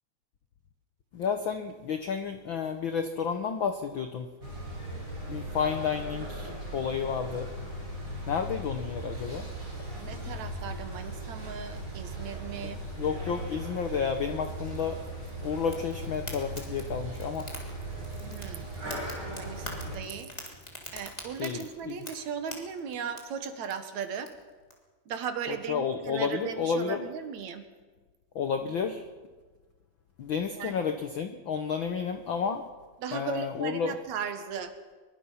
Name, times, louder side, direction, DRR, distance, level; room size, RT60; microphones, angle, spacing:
voice 1, 1.1-4.3 5.3-7.5 8.3-9.5 13.0-15.0 15.4-17.5 21.4-21.6 21.9-22.0 25.5-27.1 28.3-29.0 30.2-32.6 33.1-34.0, left 6 dB, 70° left, 8 dB, 1.1 m, -31 dB
sound 1, 4.4-20.0, right 1 dB, 25° right, 6.3 m, -38 dB
voice 2, 10.0-12.8 18.2-19.0 19.3-20.3 20.9-24.3 25.1-27.6 30.5-30.7 33.0-34.7, right 7 dB, 70° right, 8 dB, 2.7 m, -37 dB
Fire, 15.7-24.7, left 1 dB, 15° left, 3.2 m, -46 dB
23.5 x 22.5 x 5.7 m, 1.3 s
omnidirectional pair, 3.5 m